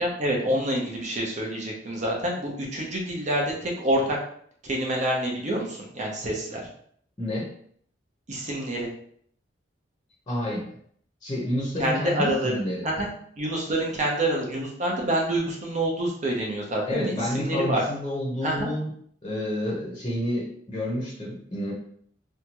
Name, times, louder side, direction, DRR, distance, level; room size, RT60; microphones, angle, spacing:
voice 1, 0.0-4.2 4.6-6.7 8.3-8.9 11.8-13.1 13.4-17.8 18.4-18.7, right 1 dB, 40° right, -1 dB, 0.7 m, -27 dB
voice 2, 10.3-10.7 11.2-12.9 16.9-18.9 19.2-21.7, left 1 dB, 25° left, -5 dB, 0.7 m, -29 dB
2.7 x 2.3 x 2.9 m, 0.63 s
head